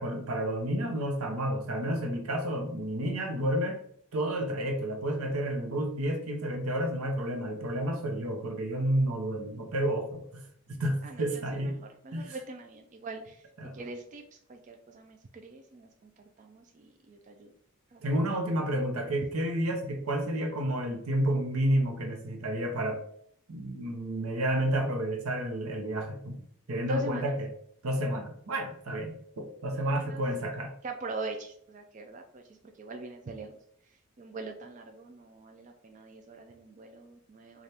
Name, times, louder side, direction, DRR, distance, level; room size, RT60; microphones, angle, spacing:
voice 1, 0.0-3.8 4.1-10.4 10.7-11.8 12.1-12.4 13.6-13.8 18.0-23.0 23.5-26.4 26.7-27.5 27.8-30.7, right 1 dB, 85° right, 4 dB, 0.8 m, -30 dB
voice 2, 11.0-13.5 13.7-14.2 14.5-17.5 17.9-18.0 26.9-27.2 29.7-30.2 30.8-33.5 34.2-37.6, right 3 dB, 35° right, 4 dB, 0.3 m, -42 dB
4.2 x 2.4 x 3.3 m, 0.66 s
head